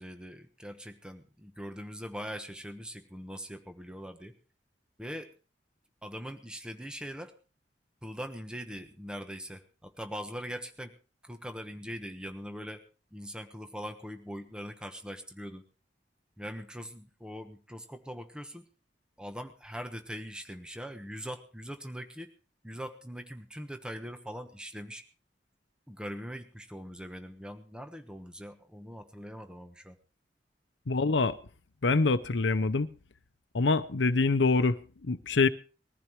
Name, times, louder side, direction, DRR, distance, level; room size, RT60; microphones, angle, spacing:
voice 1, 0.0-4.3 5.0-5.3 6.0-7.3 8.0-10.9 11.2-12.8 13.1-15.6 16.4-18.6 19.2-22.3 22.6-25.0 25.9-30.0, equal, 5° right, 7 dB, 1.1 m, -41 dB
voice 2, 30.9-31.4 31.8-32.9 33.5-35.5, left 3 dB, 90° left, 11 dB, 0.7 m, -25 dB
21.0 x 14.5 x 3.1 m, 0.35 s
head